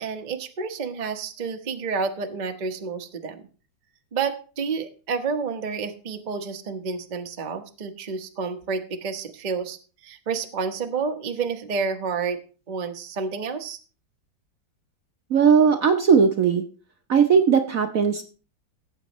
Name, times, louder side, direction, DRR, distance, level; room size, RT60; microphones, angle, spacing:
voice 1, 0.0-3.4 4.1-9.8 10.0-12.4 12.7-13.8, right 5 dB, 35° right, 5 dB, 0.8 m, -29 dB
voice 2, 15.3-16.6 17.1-18.2, right 6 dB, 55° right, 5 dB, 1.0 m, -18 dB
18.0 x 8.2 x 3.0 m, 0.38 s
omnidirectional pair, 2.1 m